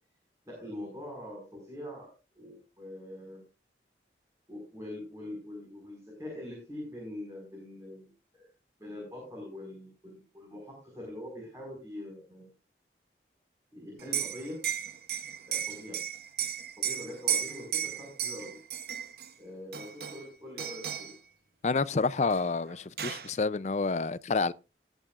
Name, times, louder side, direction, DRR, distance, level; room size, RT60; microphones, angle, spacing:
voice 1, 0.4-2.1 2.3-3.4 4.5-8.4 8.8-12.5 13.7-14.6 15.5-16.0 16.8-18.6 19.4-21.1, left 1 dB, 20° right, 4.9 m, -43 dB
Liquid, 14.0-19.3 19.7-20.3 20.6-21.2 22.3-22.4 22.7-23.3, right 9 dB, 60° right, 0.9 m, -34 dB
voice 2, 21.6-24.5, left 4 dB, 40° left, 0.4 m, -28 dB
19.0 x 9.0 x 2.5 m
head